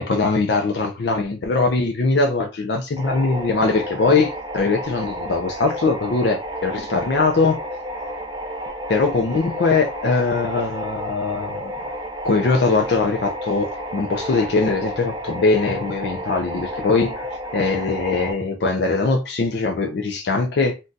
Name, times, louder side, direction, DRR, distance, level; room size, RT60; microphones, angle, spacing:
voice 1, 0.0-7.6 8.9-11.7 12.2-17.3 17.5-20.8, left 3 dB, 65° left, 0.4 m, -21 dB
sound 1, 3.0-18.3, equal, 20° right, 0.5 m, -31 dB
2.6 x 2.2 x 3.8 m
head